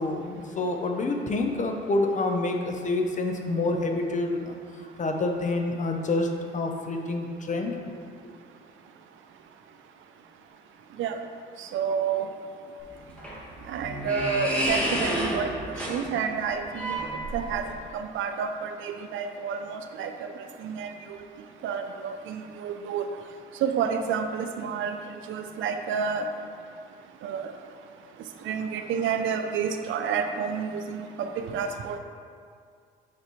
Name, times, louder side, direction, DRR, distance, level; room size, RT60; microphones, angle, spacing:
voice 1, 0.0-7.8, left 2 dB, 40° left, 3 dB, 0.7 m, -28 dB
voice 2, 11.6-12.3 13.7-17.0 17.3-17.7 17.9-20.3 20.6-21.2 21.6-23.1 23.6-25.0 25.3-26.3 27.2-27.5 28.4-32.0, right 6 dB, 80° right, 6 dB, 0.5 m, -30 dB
sound 1, 12.8-17.8, right 1 dB, 5° left, 1.5 m, -30 dB
6.6 x 5.2 x 3.1 m, 2.2 s
cardioid pair, 90°, 20 cm